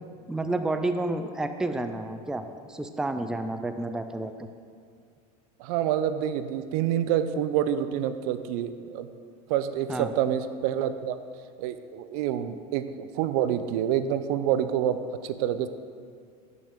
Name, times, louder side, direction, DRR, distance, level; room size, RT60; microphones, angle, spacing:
voice 1, 0.3-4.5 9.9-10.1, right 2 dB, 5° right, 8 dB, 0.4 m, -30 dB
voice 2, 5.6-9.1 9.5-11.2 11.6-15.7, right 10 dB, 65° right, 11 dB, 0.5 m, -27 dB
11.5 x 6.0 x 3.6 m, 2.2 s
hypercardioid pair, 100°, 20 cm